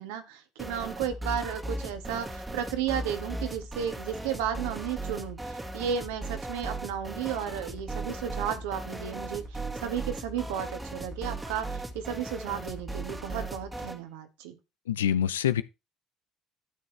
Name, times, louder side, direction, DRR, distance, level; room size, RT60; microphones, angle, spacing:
voice 1, 0.0-14.6, right 9 dB, 70° right, 1.8 m, -33 dB
sound 1, 0.6-14.0, right 2 dB, 15° right, 1.9 m, -37 dB
voice 2, 14.9-15.6, left 10 dB, 80° left, 0.5 m, -25 dB
12.0 x 8.4 x 3.3 m
figure-of-eight pair, 55°, 0 cm